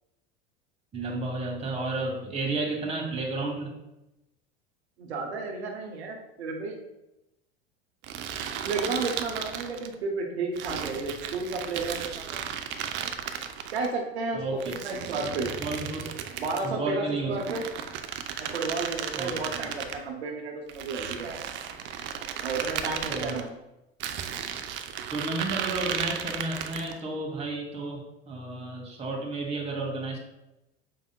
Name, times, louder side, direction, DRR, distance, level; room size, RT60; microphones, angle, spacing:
voice 1, 0.9-3.7 14.3-14.6 15.6-16.1 16.6-17.4 19.2-19.7 23.1-23.4 25.1-30.2, right 2 dB, 20° right, 0 dB, 1.2 m, -32 dB
voice 2, 5.0-6.7 8.6-12.5 13.7-14.4 14.8-15.5 16.4-17.6 18.4-21.5 22.4-23.6, right 3 dB, 80° right, 2 dB, 0.7 m, -32 dB
sound 1, 8.0-9.9 10.6-13.9 14.6-16.7 17.3-20.0 20.7-23.4 24.0-27.0, right 8 dB, 40° right, 0.4 m, -35 dB
5.4 x 3.4 x 2.2 m, 0.92 s
hypercardioid pair, 80°, 32 cm